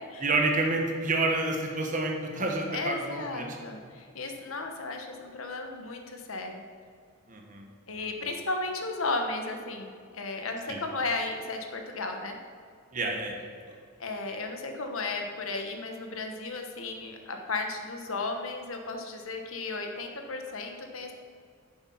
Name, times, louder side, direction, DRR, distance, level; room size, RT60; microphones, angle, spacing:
voice 1, 0.2-3.6 7.3-7.6 8.0-8.1 10.7-10.8 12.9-13.4 13.7-13.8, right 2 dB, 40° right, 1 dB, 1.4 m, -29 dB
voice 2, 2.7-6.6 7.9-12.4 14.0-21.1, left 3 dB, 80° left, 4 dB, 1.2 m, -34 dB
9.8 x 7.0 x 5.6 m, 2.3 s
head